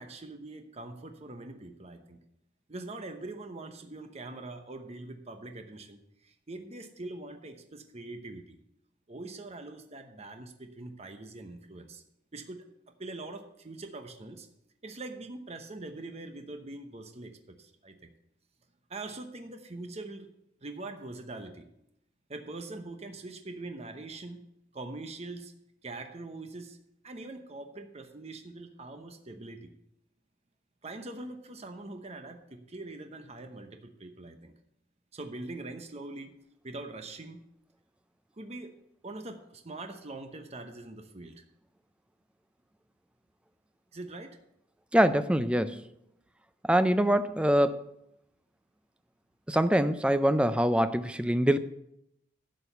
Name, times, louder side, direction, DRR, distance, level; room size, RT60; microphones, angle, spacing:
voice 1, 0.0-2.2 2.7-8.6 9.1-12.0 12.3-14.5 14.8-18.1 18.9-20.3 20.6-21.7 22.3-24.4 24.7-25.5 25.8-26.8 27.0-29.7 30.8-34.5 35.1-36.4 36.6-37.4 38.4-38.7 39.0-41.4 43.9-44.4, right 2 dB, 35° right, 6 dB, 0.9 m, -43 dB
voice 2, 44.9-45.8 46.7-47.8 49.5-51.6, equal, 5° right, 11 dB, 0.4 m, -24 dB
11.5 x 6.5 x 6.7 m, 0.80 s
head